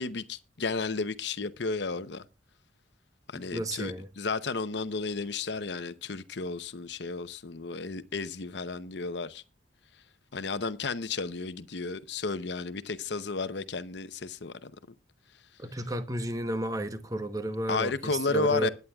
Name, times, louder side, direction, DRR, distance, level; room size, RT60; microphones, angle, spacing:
voice 1, 0.0-2.2 3.3-9.4 10.3-14.7 17.7-18.7, left 4 dB, 70° left, 0.8 m, -33 dB
voice 2, 3.3-4.1 15.6-18.7, right 1 dB, 20° right, 0.9 m, -32 dB
20.0 x 9.4 x 2.3 m
head